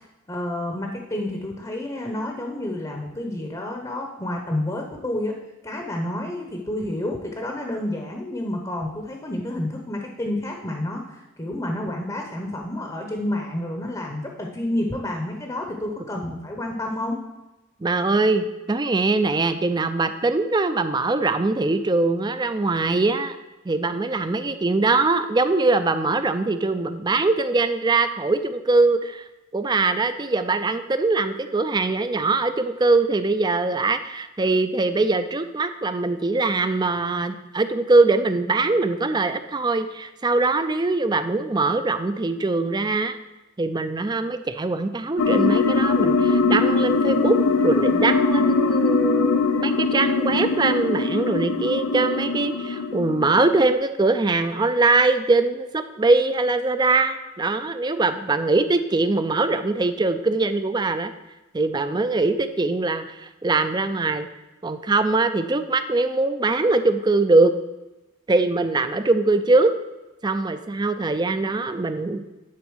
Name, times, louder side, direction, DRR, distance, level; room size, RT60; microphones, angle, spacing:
voice 1, 0.3-5.4 5.6-17.2, left 1 dB, 20° left, 2 dB, 0.8 m, -29 dB
voice 2, 17.8-23.4 23.7-29.2 29.5-43.2 43.6-47.4 47.6-61.1 61.5-64.3 64.6-67.5 68.3-69.7 70.2-72.3, right 3 dB, 20° right, 10 dB, 0.4 m, -22 dB
sound 1, 45.2-53.7, left 3 dB, 85° left, 0.6 m, -21 dB
10.5 x 4.0 x 6.2 m, 1.0 s
head